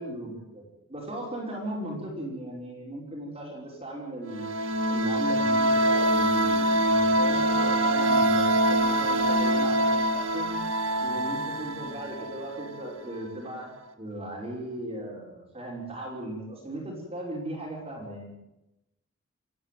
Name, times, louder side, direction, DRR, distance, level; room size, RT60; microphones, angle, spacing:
voice 1, 0.0-4.5 4.9-10.5 11.0-13.7 14.0-18.4, right 1 dB, 25° right, -2 dB, 5.6 m, -37 dB
sound 1, 4.3-12.9, right 1 dB, 60° right, 1.7 m, -24 dB
27.0 x 11.0 x 9.4 m, 0.95 s
head